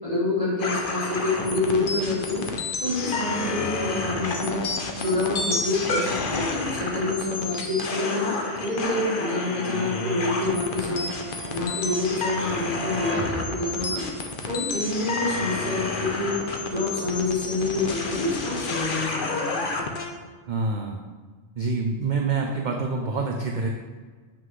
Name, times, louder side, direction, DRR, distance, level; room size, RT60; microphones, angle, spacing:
voice 1, 0.0-2.5 2.8-4.6 5.0-11.1 11.5-14.1 14.5-16.3 16.7-19.7, left 2 dB, 30° left, -9 dB, 2.4 m, -27 dB
sound 1, 0.6-20.1, left 3 dB, 50° left, 0.8 m, -30 dB
sound 2, 8.2-14.1, right 1 dB, 10° right, 1.9 m, -39 dB
voice 2, 20.5-21.0 21.6-23.7, right 4 dB, 50° right, 1 dB, 0.6 m, -26 dB
7.4 x 5.9 x 3.2 m, 1.5 s
omnidirectional pair, 1.2 m